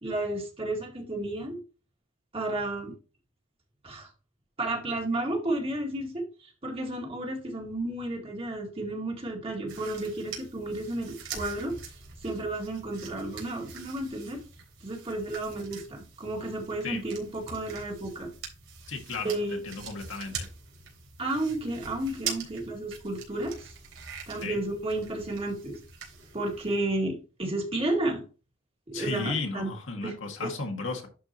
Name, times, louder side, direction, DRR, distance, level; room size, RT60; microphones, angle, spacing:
voice 1, 0.0-1.6 2.3-2.9 3.8-4.1 4.6-11.7 12.2-14.4 14.8-18.3 19.2-19.8 21.2-23.7 24.3-25.8 26.3-28.2 28.9-29.7 30.0-30.1 30.4-30.5, right 2 dB, 30° right, 0 dB, 2.1 m, -32 dB
sound 1, 9.7-26.8, right 6 dB, 80° right, 3.8 m, -43 dB
voice 2, 18.9-20.5 24.4-24.6 28.9-31.1, left 3 dB, 70° left, 2 dB, 1.7 m, -34 dB
11.0 x 4.6 x 2.9 m, 0.35 s
head